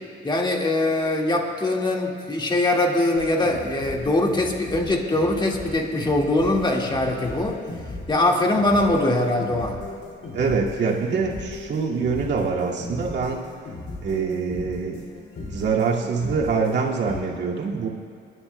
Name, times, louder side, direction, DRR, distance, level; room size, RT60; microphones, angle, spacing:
voice 1, 0.2-7.6 8.1-9.8, left 2 dB, 25° left, 0 dB, 1.8 m, -22 dB
sound 1, 3.2-17.2, left 2 dB, 60° left, 2.3 m, -37 dB
voice 2, 10.3-13.4 14.0-15.1 15.5-17.9, right 5 dB, 60° right, -3 dB, 2.1 m, -24 dB
24.5 x 11.5 x 2.2 m, 2.4 s
cardioid pair, 90°, 20 cm